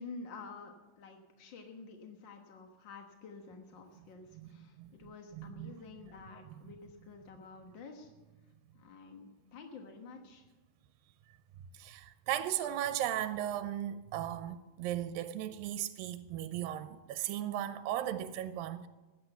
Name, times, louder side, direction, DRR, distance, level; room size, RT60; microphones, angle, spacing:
voice 1, 0.0-8.1 8.7-10.5, left 4 dB, 60° left, 1.2 m, -50 dB
voice 2, 5.4-5.8 11.7-18.9, right 11 dB, 85° right, 2.4 m, -36 dB
15.5 x 10.5 x 6.8 m
omnidirectional pair, 4.0 m